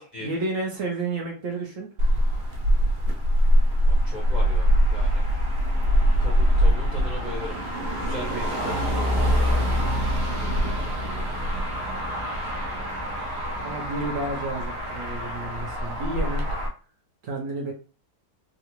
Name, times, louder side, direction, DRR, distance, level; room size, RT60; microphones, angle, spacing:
voice 1, 0.2-1.9 13.6-16.4 17.2-17.7, right 2 dB, 60° right, 0 dB, 1.0 m, -31 dB
Motor vehicle (road), 2.0-16.7, equal, 90° right, 1.3 m, -23 dB
voice 2, 3.8-5.3 6.2-7.6 7.9-9.3 10.4-11.3 16.2-16.3, left 1 dB, 40° left, -4 dB, 0.6 m, -38 dB
3.7 x 2.1 x 2.9 m, 0.38 s
omnidirectional pair, 1.8 m